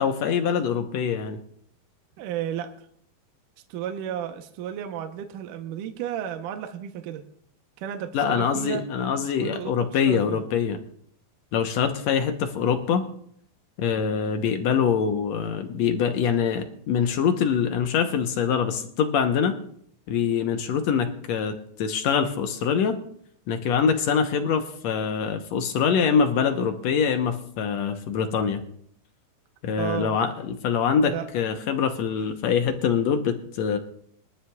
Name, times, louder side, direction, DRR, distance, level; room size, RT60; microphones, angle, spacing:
voice 1, 0.0-1.4 8.1-10.8 11.5-13.1 13.8-19.5 20.1-23.0 23.5-28.6 29.6-33.8, left 7 dB, 75° left, 6 dB, 1.6 m, -24 dB
voice 2, 2.2-2.9 3.7-7.2 7.8-8.9 9.2-10.4 29.8-30.2 31.0-31.4, right 9 dB, 70° right, 6 dB, 2.2 m, -33 dB
22.5 x 12.5 x 2.4 m, 0.65 s
omnidirectional pair, 4.3 m